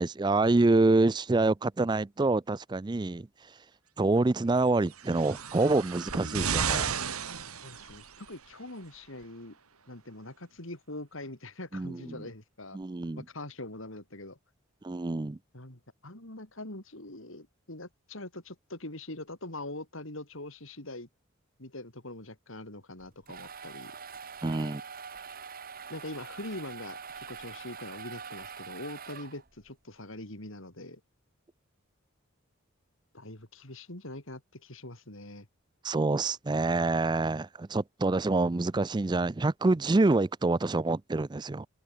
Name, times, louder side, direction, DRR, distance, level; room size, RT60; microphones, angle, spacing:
voice 1, 0.0-3.3 4.0-7.0 11.7-12.2 12.7-13.2 14.8-15.4 24.4-24.8 35.8-41.7, right 2 dB, 20° right, 0.4 m, -26 dB
sound 1, 4.9-8.3 9.2-9.3, right 6 dB, 90° right, 2.8 m, -33 dB
voice 2, 7.6-9.6 9.9-12.8 13.2-14.4 15.5-21.1 21.6-23.9 25.9-31.0 33.1-35.5, left 2 dB, 65° left, 3.9 m, -43 dB
sound 2, 23.0-29.7, right 6 dB, 40° right, 1.3 m, -44 dB
head